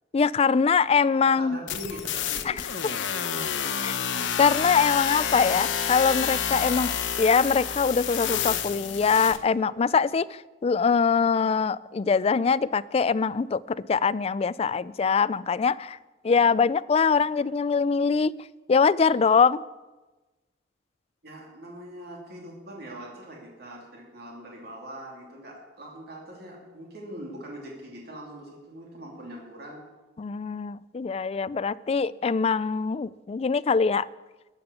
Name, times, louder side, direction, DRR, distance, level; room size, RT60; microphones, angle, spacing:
voice 1, 0.1-1.6 2.5-2.6 3.8-4.0 4.4-6.9 7.2-16.0 16.2-18.3 18.7-19.6 30.2-34.1, left 5 dB, 35° left, 17 dB, 0.3 m, -23 dB
voice 2, 1.4-3.3 21.2-29.9, right 1 dB, 55° right, -1 dB, 2.9 m, -42 dB
sound 1, 1.7-9.4, left 8 dB, 80° left, 1.0 m, -29 dB
14.5 x 8.7 x 6.8 m, 1.2 s
head